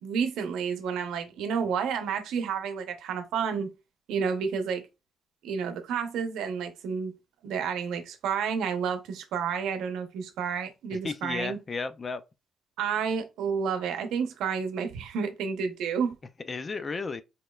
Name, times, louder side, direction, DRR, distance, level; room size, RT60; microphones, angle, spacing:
voice 1, 0.0-3.7 4.1-4.8 5.4-7.1 7.4-11.6 12.8-16.1, right 6 dB, 85° right, 0.7 m, -30 dB
voice 2, 10.9-12.2 16.5-17.2, left 4 dB, 35° left, 0.4 m, -33 dB
4.2 x 3.0 x 2.3 m
cardioid pair, 90°, 0 cm